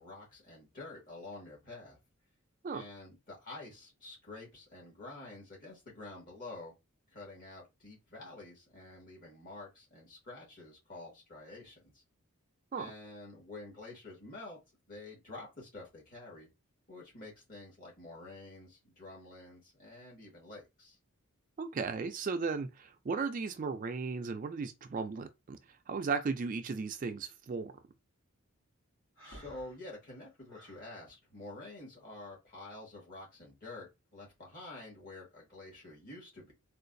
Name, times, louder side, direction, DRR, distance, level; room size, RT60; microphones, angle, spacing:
voice 1, 0.0-2.0 2.7-6.7 7.1-11.8 12.8-14.6 14.9-16.5 16.9-21.0 29.2-36.5, left 2 dB, 40° left, 1.8 m, -48 dB
voice 2, 21.6-25.6 25.9-27.7, right 4 dB, 35° right, 0.3 m, -35 dB
Breathing, 29.2-30.9, right 1 dB, 60° left, 1.8 m, -54 dB
3.8 x 2.4 x 2.6 m
head